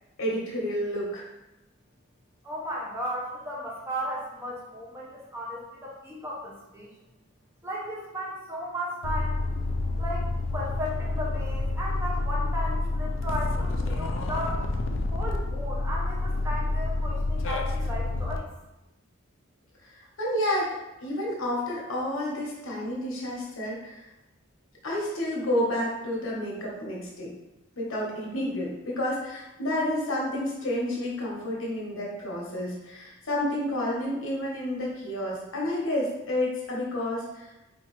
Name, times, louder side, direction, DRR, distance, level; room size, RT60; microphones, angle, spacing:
voice 1, 0.2-1.3 19.9-20.8 21.0-24.0 24.8-27.3 27.8-37.5, left 1 dB, 80° left, -3 dB, 1.2 m, -30 dB
voice 2, 2.4-6.9 7.6-9.4 10.0-10.2 10.5-14.7 15.1-18.5, equal, 10° right, -4 dB, 0.8 m, -35 dB
sound 1, 9.0-18.4, left 2 dB, 65° left, 0.4 m, -28 dB
4.4 x 2.6 x 3.2 m, 0.98 s
head